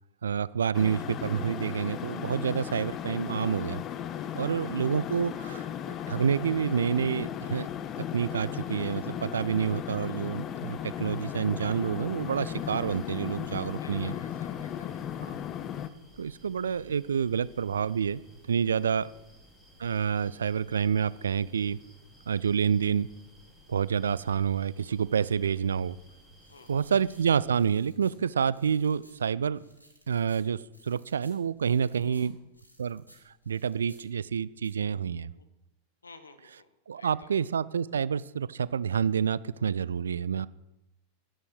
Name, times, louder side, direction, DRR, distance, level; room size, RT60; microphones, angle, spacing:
voice 1, 0.2-3.8 4.3-7.7 8.0-14.1 16.2-18.2 18.5-19.1 19.8-21.8 22.3-23.1 23.7-26.0 26.7-29.6 30.1-32.3 32.8-33.0 33.5-35.3 36.9-40.5, right 7 dB, 70° right, 20 dB, 0.4 m, -28 dB
sound 1, 0.7-15.9, left 10 dB, 30° left, 0.7 m, -36 dB
voice 2, 4.4-4.9 9.3-9.7 13.8-15.5 18.9-19.2 26.5-27.0 31.9-32.3 35.3-35.5 36.0-36.7 36.9-37.4, left 3 dB, 75° left, 9 dB, 1.3 m, -54 dB
sound 2, 12.5-27.5, left 1 dB, 10° left, 4.1 m, -57 dB
sound 3, 26.3-34.7, equal, 90° right, 2.8 m, -60 dB
11.5 x 11.0 x 6.2 m, 0.95 s
figure-of-eight pair, 90°, 0 cm